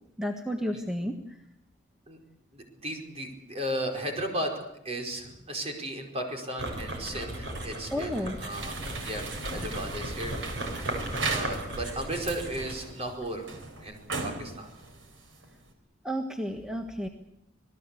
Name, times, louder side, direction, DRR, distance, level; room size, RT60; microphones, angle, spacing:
voice 1, 0.2-1.1 7.9-8.4 16.0-17.1, equal, 5° right, 4 dB, 1.5 m, -31 dB
voice 2, 2.5-4.5 4.8-8.8 9.0-9.2 9.5-10.3 11.2-13.5 13.8-14.0 14.2-14.7, right 1 dB, 30° right, 3 dB, 4.8 m, -35 dB
sound 1, 6.6-12.9, right 1 dB, 65° right, 6.7 m, -36 dB
sound 2, 8.5-15.7, right 3 dB, 85° right, 4.2 m, -37 dB
27.0 x 19.0 x 8.5 m, 0.81 s
head